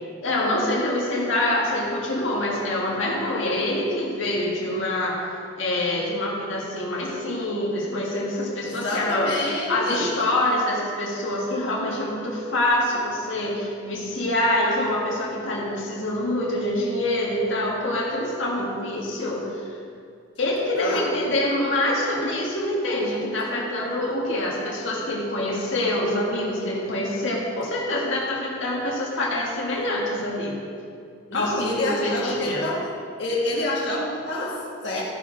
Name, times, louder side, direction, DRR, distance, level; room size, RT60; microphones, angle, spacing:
voice 1, 0.2-5.2 5.6-9.3 9.7-19.4 20.4-30.6 31.3-32.6, left 1 dB, 75° left, -4 dB, 1.8 m, -25 dB
voice 2, 8.6-10.1 20.8-21.4 31.3-32.9 33.2-35.0, left 1 dB, 60° left, -5 dB, 1.8 m, -28 dB
13.5 x 5.3 x 5.1 m, 2.3 s
head